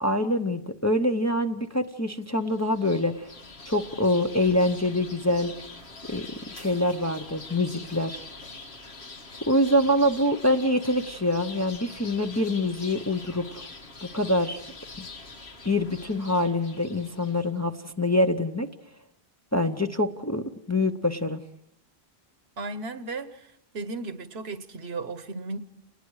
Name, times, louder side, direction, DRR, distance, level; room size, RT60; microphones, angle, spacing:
voice 1, 0.0-3.3 3.7-5.5 6.1-8.2 9.5-13.6 14.0-14.6 15.0-15.1 15.6-18.7 19.5-21.4, left 1 dB, 20° left, 6 dB, 0.7 m, -25 dB
sound 1, 2.3-17.5, left 3 dB, 80° left, 2.1 m, -44 dB
voice 2, 22.6-23.4 23.7-25.6, right 3 dB, 75° right, 12 dB, 1.3 m, -35 dB
30.0 x 20.0 x 4.8 m, 0.78 s
omnidirectional pair, 1.1 m